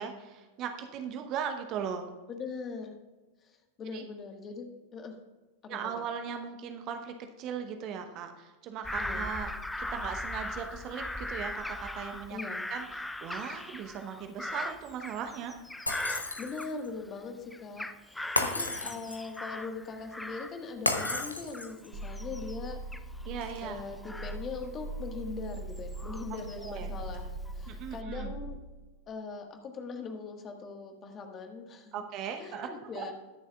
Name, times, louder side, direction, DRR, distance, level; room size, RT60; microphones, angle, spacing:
voice 1, 0.0-2.1 3.9-4.0 5.7-9.5 9.8-12.4 12.7-15.6 18.4-18.8 23.2-23.8 26.5-26.9 27.7-28.3 31.9-33.1, right 7 dB, 35° right, 6 dB, 0.9 m, -38 dB
voice 2, 2.3-3.0 3.4-4.7 4.9-5.2 5.6-5.9 9.0-9.3 12.3-12.7 16.4-22.8 23.6-28.6 29.1-32.0 32.4-33.1, left 4 dB, 25° left, 5 dB, 1.5 m, -41 dB
Bird vocalization bird call bird song / Crow, 8.8-17.2 17.5-20.6 20.9-26.9 27.4-28.0, left 1 dB, 5° left, 0.4 m, -40 dB
Shatter, 15.9-16.8 18.4-19.4 20.9-21.9, left 2 dB, 80° left, 1.0 m, -32 dB
Car / Engine, 21.9-28.5, right 2 dB, 55° right, 2.3 m, -41 dB
21.0 x 7.1 x 2.4 m, 1.2 s
figure-of-eight pair, 90°, 0 cm